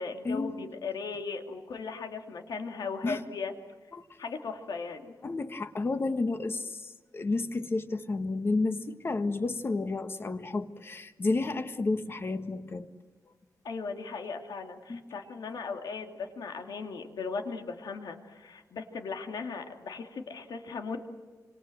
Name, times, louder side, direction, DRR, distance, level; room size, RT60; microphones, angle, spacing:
voice 1, 0.0-3.5 4.2-5.1 13.6-21.0, left 4 dB, 85° left, 4 dB, 2.6 m, -37 dB
voice 2, 5.2-12.9 14.9-15.0, left 3 dB, 35° left, 9 dB, 1.5 m, -31 dB
26.5 x 26.0 x 7.8 m, 1.3 s
wide cardioid pair, 135°, 7 cm